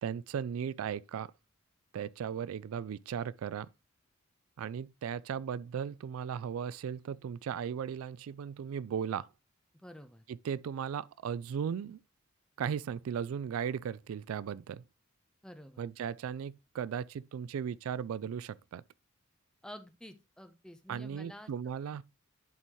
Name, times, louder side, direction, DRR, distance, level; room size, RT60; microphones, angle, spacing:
voice 1, 0.0-1.3 1.9-3.7 4.6-9.3 10.3-12.0 12.6-14.8 15.8-18.8 20.9-22.0, right 7 dB, 80° right, 0.3 m, -36 dB
voice 2, 9.8-10.2 15.4-15.8 19.6-21.5 21.9-22.0, equal, 5° left, 0.7 m, -50 dB
11.0 x 4.2 x 3.0 m
head